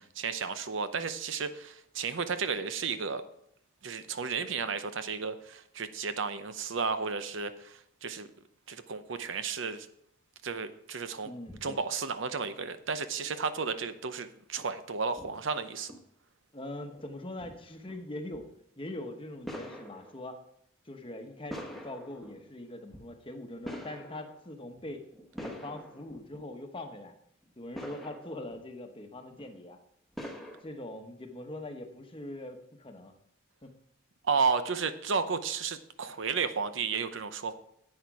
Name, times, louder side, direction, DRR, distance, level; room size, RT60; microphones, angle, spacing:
voice 1, 0.0-3.2 3.8-8.3 8.7-9.9 10.4-11.3 11.6-15.9 34.3-37.5, right 5 dB, 65° right, 11 dB, 0.7 m, -33 dB
voice 2, 11.2-11.8 16.5-18.5 18.8-20.4 20.8-25.1 25.4-27.1 27.6-29.8 30.6-33.1 33.6-33.7, left 1 dB, 25° left, 5 dB, 1.0 m, -42 dB
sound 1, 11.5-11.7 13.1-13.6 14.6-14.7 15.2-15.5 15.8-16.0 16.8-17.1 17.4-17.6 17.9-18.0 18.3-18.5 19.4-20.3 21.0-22.5 22.9-23.1 23.6-24.5 24.8-26.5 26.8-26.9 27.4-28.6 29.3-29.5 30.1-30.6, equal, ahead, 1.2 m, -45 dB
10.0 x 8.6 x 4.8 m, 0.72 s
head